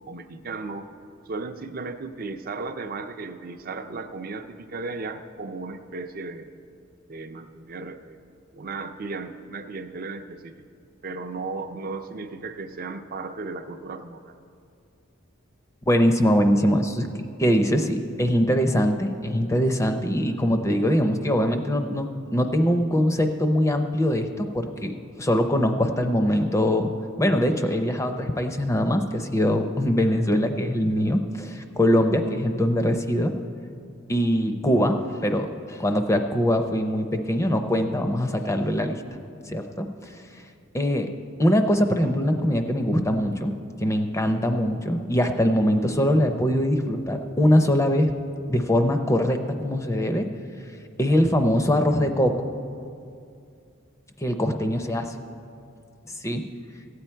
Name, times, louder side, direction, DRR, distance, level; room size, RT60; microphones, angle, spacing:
voice 1, 0.1-0.8 1.3-6.5 7.1-8.2 8.5-10.6 11.0-14.4, right 3 dB, 40° right, 8 dB, 0.5 m, -35 dB
voice 2, 15.9-26.9 27.2-33.3 34.1-39.0 39.5-40.2 40.7-41.1 41.4-48.1 48.5-50.3 51.0-52.5 54.2-55.1 56.1-56.4, equal, 15° left, 6 dB, 0.5 m, -22 dB
15.5 x 8.6 x 4.5 m, 2.4 s
head